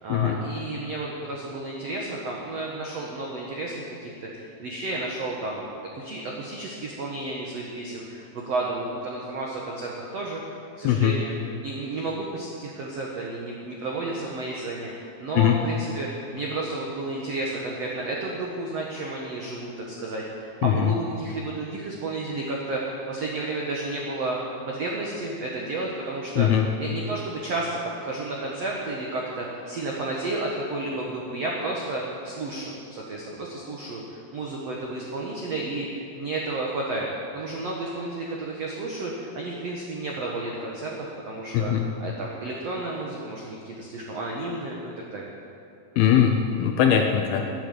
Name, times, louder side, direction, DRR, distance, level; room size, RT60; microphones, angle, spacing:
voice 1, 0.0-11.3 11.6-22.8 23.1-24.4 24.7-26.5 26.8-37.1 37.3-41.7 42.0-45.3, right 2 dB, 75° right, -2 dB, 1.4 m, -32 dB
voice 2, 10.8-11.2 15.4-15.6 20.6-20.9 26.4-26.7 41.5-41.9 46.0-46.3 46.6-47.5, left 10 dB, 80° left, 4 dB, 2.3 m, -20 dB
12.5 x 10.0 x 8.2 m, 2.5 s
omnidirectional pair, 5.0 m